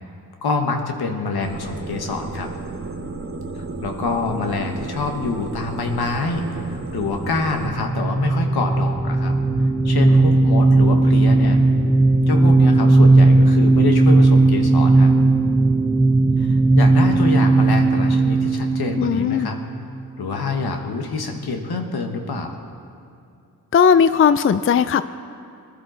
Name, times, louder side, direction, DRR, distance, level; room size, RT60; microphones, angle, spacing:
voice 1, 0.4-2.5 3.6-9.3 9.8-11.6 12.3-15.1 16.4-19.6 20.2-22.6, left 3 dB, 75° left, 4 dB, 1.4 m, -26 dB
sound 1, 1.4-7.7, right 3 dB, 35° right, 1.3 m, -32 dB
sound 2, 7.6-20.0, right 2 dB, 10° right, 0.6 m, -16 dB
voice 2, 19.0-19.5 23.7-25.0, left 7 dB, 35° left, 13 dB, 0.4 m, -16 dB
20.0 x 11.5 x 4.0 m, 2.5 s
cardioid pair, 45°, 38 cm